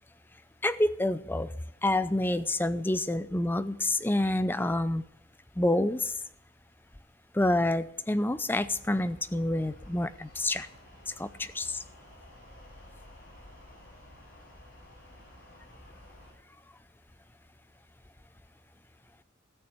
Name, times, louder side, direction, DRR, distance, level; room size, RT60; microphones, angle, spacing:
voice 1, 0.6-1.5 1.8-5.0 5.6-6.2 7.3-10.7 11.1-11.8, left 1 dB, 10° left, 13 dB, 0.5 m, -28 dB
sound 1, 8.5-16.3, left 1 dB, 50° left, 7.1 m, -53 dB
13.5 x 7.0 x 7.9 m, 0.73 s
head